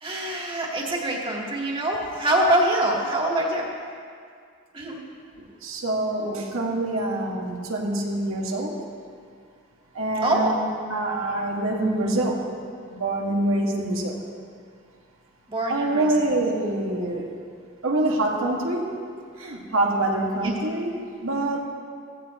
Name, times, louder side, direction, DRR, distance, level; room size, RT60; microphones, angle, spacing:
voice 1, 0.0-3.7 4.7-5.0 10.2-10.6 15.5-16.4 20.4-20.5, right 1 dB, 25° right, -2 dB, 2.0 m, -24 dB
voice 2, 5.6-8.7 9.9-10.6 10.9-12.4 12.9-14.2 15.7-17.3 17.8-19.0 19.4-21.6, right 2 dB, 90° right, -2 dB, 2.2 m, -25 dB
16.0 x 15.0 x 3.2 m, 2.2 s
head